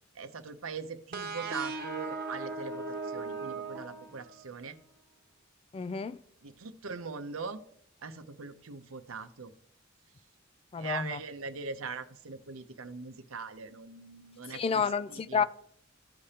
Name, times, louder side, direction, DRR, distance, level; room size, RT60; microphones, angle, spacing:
voice 1, 0.1-4.8 6.4-7.6 8.0-9.5 10.8-15.4, right 5 dB, 80° right, 0.7 m, -41 dB
sound 1, 1.1-4.7, right 3 dB, 50° right, 1.0 m, -38 dB
voice 2, 5.7-6.2 10.7-11.2 14.5-15.4, left 6 dB, 30° left, 0.3 m, -30 dB
14.0 x 4.9 x 2.8 m
head